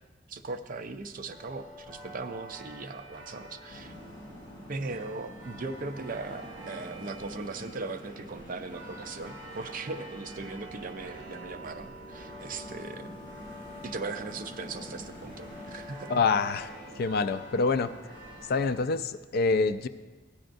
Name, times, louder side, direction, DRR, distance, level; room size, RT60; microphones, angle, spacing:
voice 1, 0.3-3.9 4.7-13.2 13.8-16.2, right 3 dB, 45° right, 8 dB, 0.5 m, -39 dB
sound 1, 1.3-18.9, right 1 dB, 25° right, 1.6 m, -47 dB
sound 2, 3.7-18.8, equal, 30° left, 3.7 m, -48 dB
voice 2, 16.1-17.9 18.5-19.9, left 4 dB, 55° left, 12 dB, 0.4 m, -26 dB
15.0 x 9.9 x 2.6 m, 1.3 s
head